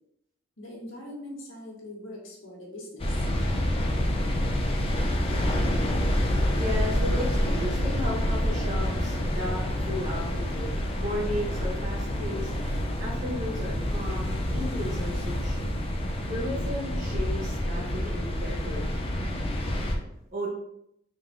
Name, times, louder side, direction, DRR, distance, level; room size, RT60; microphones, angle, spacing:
voice 1, 0.6-3.3 7.6-7.8 8.5-8.6 10.5-10.6 14.6-14.7, left 1 dB, 65° left, -2 dB, 1.2 m, -42 dB
sound 1, 3.0-20.0, left 1 dB, 30° left, 0.5 m, -27 dB
voice 2, 6.0-18.9 20.3-20.5, left 1 dB, 40° right, -5 dB, 0.8 m, -35 dB
3.8 x 2.7 x 3.5 m, 0.77 s
head